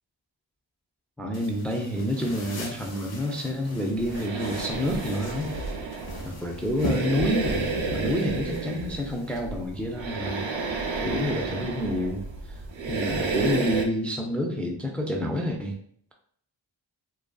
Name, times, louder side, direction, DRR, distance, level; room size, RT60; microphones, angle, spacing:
voice 1, 1.2-5.5 6.2-10.5 11.0-12.6 12.9-15.7, left 1 dB, 5° left, 1 dB, 0.3 m, -28 dB
sound 1, 1.3-9.4, equal, 55° left, 0.7 m, -39 dB
sound 2, 3.9-13.8, right 3 dB, 75° right, 0.5 m, -31 dB
2.5 x 2.3 x 2.2 m, 0.64 s
cardioid pair, 40°, 46 cm